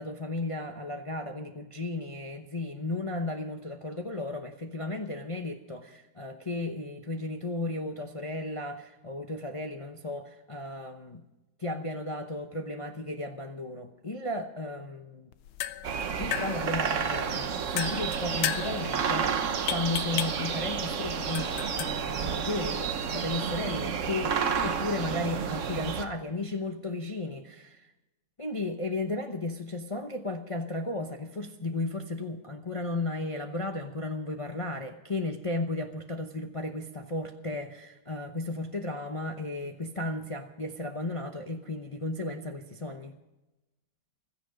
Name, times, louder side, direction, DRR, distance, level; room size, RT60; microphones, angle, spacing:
voice 1, 0.0-11.2 11.6-15.3 16.2-24.4 24.6-27.9 28.4-43.2, left 2 dB, 60° left, 4 dB, 0.3 m, -34 dB
sound 1, 15.3-23.9, left 12 dB, 85° left, 1.6 m, -37 dB
sound 2, 15.8-26.0, right 6 dB, 50° right, 1.0 m, -31 dB
16.0 x 13.5 x 5.1 m, 1.0 s
omnidirectional pair, 2.2 m